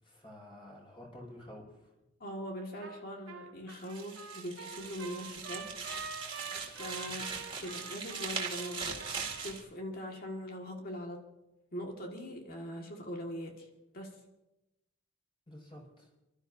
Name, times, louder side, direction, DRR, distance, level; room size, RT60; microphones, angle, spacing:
voice 1, 0.0-1.9 7.0-7.2 15.5-16.1, left 1 dB, 25° left, -2 dB, 5.2 m, -50 dB
voice 2, 2.2-5.8 6.3-6.4 6.7-9.1 9.4-11.3 11.7-13.7 13.9-14.2, equal, 45° left, 1 dB, 1.8 m, -42 dB
Trumpet, 2.8-3.0 3.3-9.5, right 5 dB, 70° right, 1.8 m, -46 dB
sound 1, 3.7-9.6, right 5 dB, 25° right, 2.2 m, -40 dB
30.0 x 12.5 x 2.7 m, 0.97 s
head